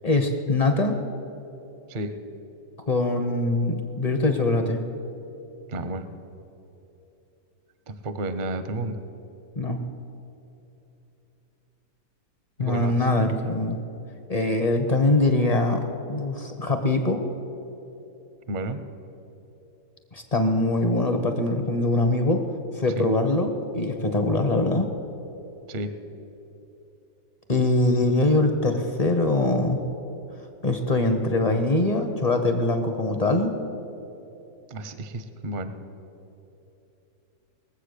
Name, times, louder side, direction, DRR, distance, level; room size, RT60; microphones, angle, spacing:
voice 1, 0.0-1.0 2.9-4.8 9.6-9.8 12.6-13.8 14.3-15.8 16.1-17.2 20.1-22.4 22.7-24.9 27.5-29.8 30.6-33.6, left 2 dB, 40° left, 6 dB, 0.5 m, -23 dB
voice 2, 5.7-6.0 7.9-9.0 12.6-13.0 18.5-18.8 23.0-23.1 25.7-25.9 34.7-35.7, right 2 dB, 55° right, 10 dB, 0.5 m, -31 dB
20.5 x 7.7 x 6.6 m, 3.0 s
omnidirectional pair, 1.9 m